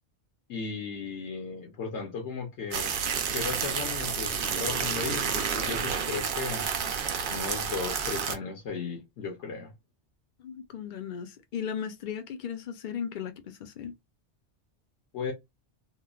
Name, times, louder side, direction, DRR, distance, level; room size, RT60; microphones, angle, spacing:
voice 1, 0.5-3.0 3.3-6.7 7.3-9.7 15.1-15.3, left 5 dB, 75° left, 1.0 m, -36 dB
sound 1, 2.7-8.4, right 6 dB, 55° right, 0.6 m, -30 dB
voice 2, 10.4-13.9, left 8 dB, 55° left, 0.6 m, -36 dB
3.0 x 2.0 x 2.3 m
omnidirectional pair, 1.2 m